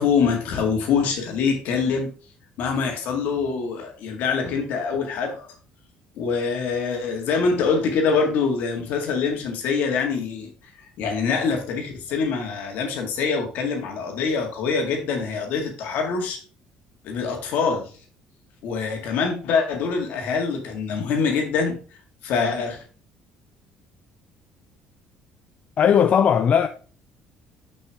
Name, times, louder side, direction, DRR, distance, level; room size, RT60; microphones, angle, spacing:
voice 1, 0.0-2.1 2.6-5.5 6.2-10.5 11.0-16.4 17.0-17.9 18.6-21.8 22.2-22.8, left 5 dB, 75° left, 1.9 m, -24 dB
voice 2, 25.8-26.7, left 8 dB, 45° left, 0.4 m, -17 dB
6.1 x 5.4 x 3.5 m
cardioid pair, 90°, 3 cm